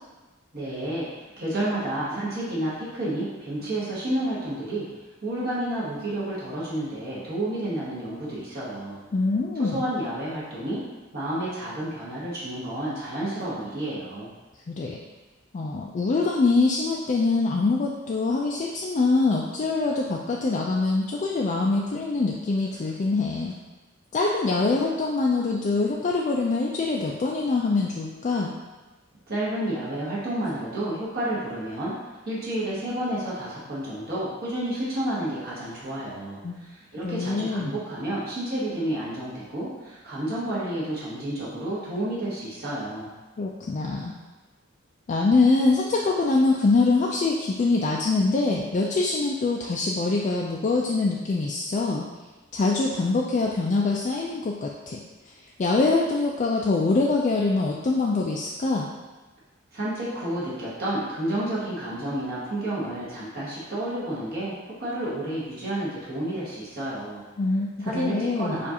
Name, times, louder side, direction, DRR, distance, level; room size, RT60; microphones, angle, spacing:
voice 1, 0.5-1.1 1.4-4.9 5.2-9.0 9.6-10.8 11.1-14.3 29.3-31.9 32.2-43.1 59.7-67.2 67.8-68.7, right 1 dB, 50° right, -8 dB, 1.1 m, -30 dB
voice 2, 9.1-9.8 14.7-15.0 15.5-23.5 24.1-28.5 36.4-36.5 37.0-37.7 43.4-44.1 45.1-52.1 52.5-55.0 55.6-58.9 67.4-68.6, left 3 dB, 35° left, -2 dB, 0.3 m, -24 dB
6.7 x 2.5 x 2.8 m, 1.2 s
head